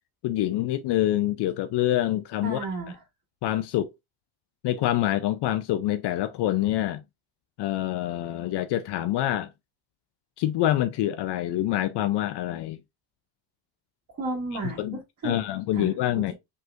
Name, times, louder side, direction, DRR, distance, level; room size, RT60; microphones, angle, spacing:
voice 1, 0.2-2.7 3.4-3.9 4.6-7.0 7.6-9.5 10.4-12.8 14.8-15.0 15.2-16.3, left 13 dB, 65° left, 0.5 m, -26 dB
voice 2, 2.4-3.0 14.1-15.5 15.7-15.9, right 2 dB, 40° right, 2.3 m, -33 dB
5.4 x 3.9 x 2.4 m
cardioid pair, 145°, 45 cm